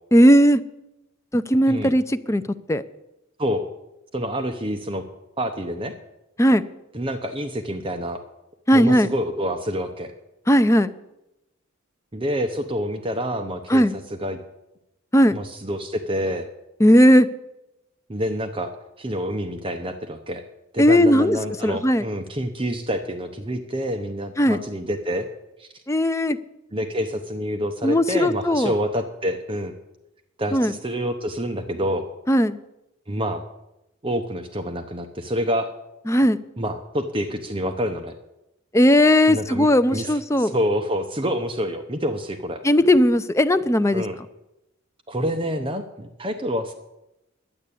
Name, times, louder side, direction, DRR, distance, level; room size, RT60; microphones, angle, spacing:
voice 1, 0.1-0.6 1.3-2.4 2.7-2.8 6.4-6.6 8.7-9.1 10.5-10.9 13.7-14.0 15.1-15.4 16.8-17.3 20.8-22.0 24.4-24.6 25.9-26.4 27.8-28.7 30.5-30.7 32.3-32.6 36.1-36.4 38.7-40.5 42.6-44.0, equal, 15° left, 11 dB, 0.5 m, -17 dB
voice 2, 4.1-5.0 5.4-5.9 6.9-8.2 8.7-10.1 12.1-14.4 15.3-16.5 18.1-18.7 19.0-20.4 20.7-25.3 25.6-25.7 26.7-29.7 30.4-32.1 33.1-33.4 34.0-35.7 36.6-38.1 39.3-42.6 43.9-44.2 45.1-46.7, equal, 25° right, 7 dB, 0.8 m, -27 dB
11.0 x 9.9 x 8.4 m, 0.90 s
head